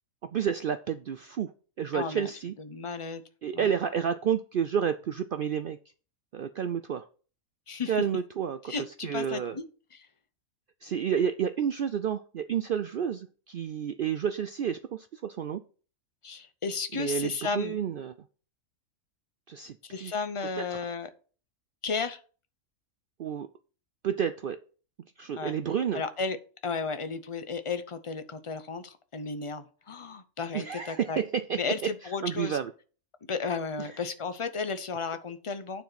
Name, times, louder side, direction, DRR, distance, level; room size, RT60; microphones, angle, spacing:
voice 1, 0.2-1.5 1.8-2.5 3.4-5.8 6.3-7.1 7.9-8.7 9.0-9.6 10.8-15.6 16.9-18.1 19.5-19.8 20.0-20.2 20.6-20.8 23.2-23.5 24.0-24.6 25.2-26.0 30.5-31.9 32.2-32.7 33.8-33.9, right 8 dB, 70° right, 10 dB, 0.5 m, -30 dB
voice 2, 1.9-2.3 2.6-3.2 3.5-3.7 7.7-7.9 8.7-9.6 9.9-10.1 16.2-17.8 19.8-21.1 21.8-22.2 25.4-25.6 25.9-26.4 26.6-31.2 31.6-32.6 33.3-35.8, left 4 dB, 35° left, 10 dB, 0.6 m, -34 dB
9.4 x 4.6 x 5.8 m, 0.39 s
omnidirectional pair, 1.4 m